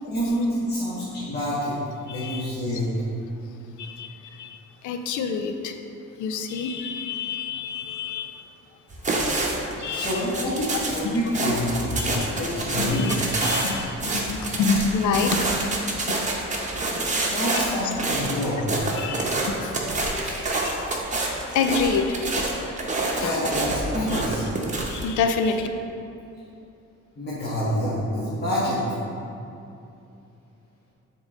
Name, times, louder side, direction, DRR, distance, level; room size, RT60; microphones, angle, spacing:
voice 1, 0.0-1.8 2.1-2.9 9.9-13.1 17.2-18.7 19.8-20.1 23.1-24.5 27.2-29.0, equal, 35° left, -9 dB, 1.5 m, -27 dB
voice 2, 2.1-2.4 3.8-5.8 6.2-8.4 9.8-10.3 11.0-11.2 12.0-12.3 12.8-16.2 17.5-17.6 18.9-19.8 20.2-22.6 23.1-23.5 24.0-24.2 24.7-25.7, left 5 dB, 75° left, 7 dB, 0.6 m, -28 dB
sound 1, 8.9-25.1, right 2 dB, 25° right, 1.0 m, -27 dB
7.1 x 3.9 x 3.7 m, 2.7 s
cardioid pair, 90°, 30 cm